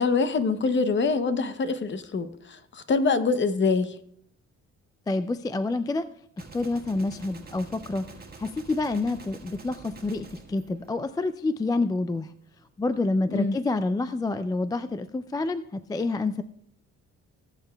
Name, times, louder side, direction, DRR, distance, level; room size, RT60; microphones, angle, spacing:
voice 1, 0.0-3.9 13.3-13.6, left 4 dB, 40° left, 0.8 m, -25 dB
voice 2, 5.1-6.1 6.4-8.0 8.4-12.3 12.8-15.6 15.9-16.4, left 3 dB, 15° left, 0.3 m, -28 dB
Gunshot gunfire, 6.4-11.6, right 4 dB, 30° right, 1.5 m, -47 dB
19.0 x 6.8 x 2.3 m
cardioid pair, 90°, 30 cm